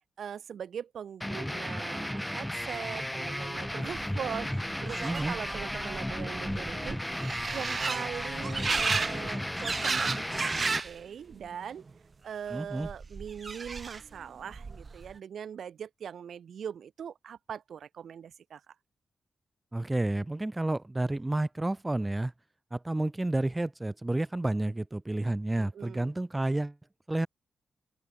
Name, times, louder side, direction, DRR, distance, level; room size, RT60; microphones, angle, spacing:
voice 1, 0.2-7.0 7.5-11.8 12.2-18.7 25.6-26.1, right 8 dB, 70° right, 1.8 m, -41 dB
sound 1, 1.2-10.8, left 1 dB, 5° left, 1.5 m, -34 dB
sound 2, 3.7-11.0 11.3-11.9 12.8-14.2 14.5-15.1, right 4 dB, 35° right, 1.8 m, -34 dB
voice 2, 5.0-5.3 12.5-12.9 19.7-22.3 22.7-26.7 27.1-27.3, right 2 dB, 15° right, 0.6 m, -30 dB
open air
cardioid pair, 115°, 0 cm